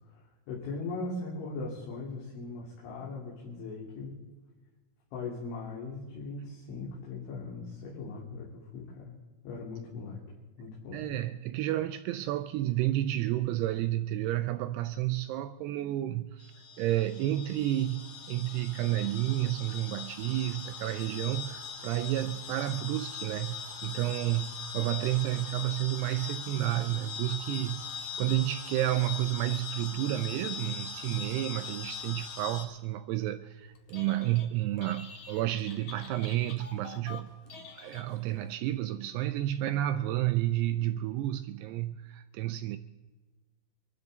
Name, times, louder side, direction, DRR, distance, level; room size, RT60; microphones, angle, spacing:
voice 1, 0.0-4.2 5.1-9.2 9.4-10.2 10.6-11.1, left 3 dB, 85° left, 5.1 m, -39 dB
voice 2, 10.9-16.5 16.8-37.4 37.8-42.8, right 14 dB, 85° right, 2.3 m, -31 dB
sound 1, 16.4-32.6, left 6 dB, 70° left, 4.3 m, -41 dB
Telephone, 33.7-34.5 34.8-38.5, left 5 dB, 50° left, 2.4 m, -48 dB
25.5 x 13.0 x 4.0 m
omnidirectional pair, 5.4 m